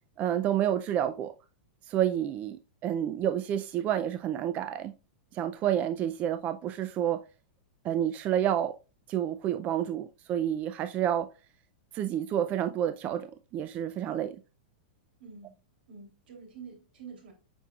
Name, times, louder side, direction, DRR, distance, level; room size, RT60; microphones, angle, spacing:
voice 1, 0.2-1.3 1.9-4.9 5.3-7.2 7.8-8.7 9.1-11.3 11.9-14.4, right 10 dB, 30° right, 0.4 m, -29 dB
voice 2, 15.2-17.3, right 5 dB, 80° right, 3.2 m, -48 dB
7.4 x 5.4 x 2.4 m
supercardioid pair, 145°, 5 cm